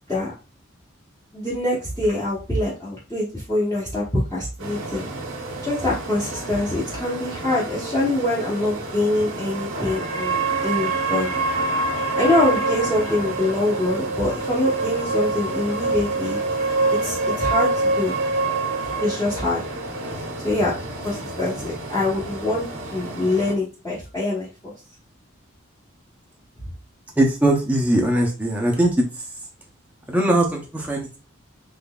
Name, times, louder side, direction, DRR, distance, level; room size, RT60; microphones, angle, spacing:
voice 1, 1.3-5.1 5.6-11.3 12.1-16.4 17.0-18.1 19.0-19.6 20.4-20.8 21.0-22.6 22.9-24.7, left 2 dB, 15° left, -9 dB, 1.0 m, -24 dB
sound 1, 4.6-23.5, right 3 dB, 85° right, 0.9 m, -27 dB
voice 2, 27.2-29.1 30.1-31.2, right 1 dB, 10° right, 0 dB, 0.6 m, -20 dB
3.7 x 3.2 x 2.3 m, 0.32 s
head